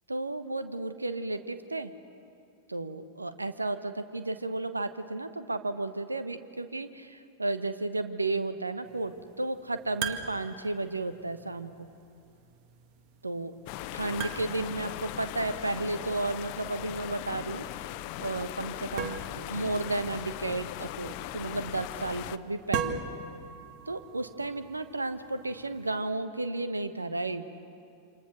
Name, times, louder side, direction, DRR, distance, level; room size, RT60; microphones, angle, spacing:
voice 1, 0.1-1.9 2.7-11.9 13.2-13.5 13.9-17.7 18.2-23.0 23.9-27.4, right 2 dB, 80° right, 10 dB, 1.2 m, -33 dB
sound 1, 8.8-26.0, right 7 dB, 45° right, 1.9 m, -42 dB
sound 2, 13.7-22.4, left 15 dB, 45° left, 0.8 m, -39 dB
28.0 x 27.0 x 6.5 m, 2.5 s
figure-of-eight pair, 90°, 0 cm